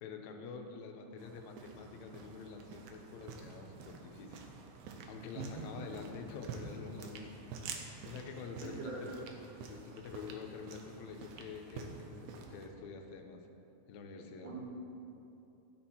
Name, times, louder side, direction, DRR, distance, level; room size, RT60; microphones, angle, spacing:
voice 1, 0.0-4.4 5.1-7.5 8.1-9.2 9.7-13.4 13.9-14.5, left 5 dB, 80° left, 3 dB, 1.8 m, -47 dB
sound 1, 1.2-12.7, right 5 dB, 85° right, 2.0 m, -49 dB
voice 2, 5.3-5.7 8.6-9.0 14.4-14.7, right 4 dB, 70° right, -5 dB, 2.1 m, -42 dB
12.5 x 4.3 x 2.8 m, 2.8 s
omnidirectional pair, 3.4 m